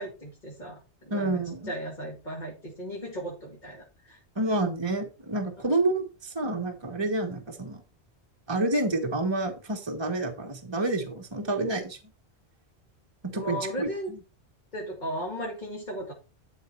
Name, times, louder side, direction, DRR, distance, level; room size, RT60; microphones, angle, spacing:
voice 1, 0.0-4.2 5.6-5.7 13.3-14.1 14.7-16.1, equal, 40° left, 2.5 m, -36 dB
voice 2, 1.1-1.7 4.4-7.8 8.5-12.0 13.2-14.2, right 2 dB, 25° right, 1.4 m, -29 dB
12.0 x 4.6 x 4.5 m
omnidirectional pair, 1.1 m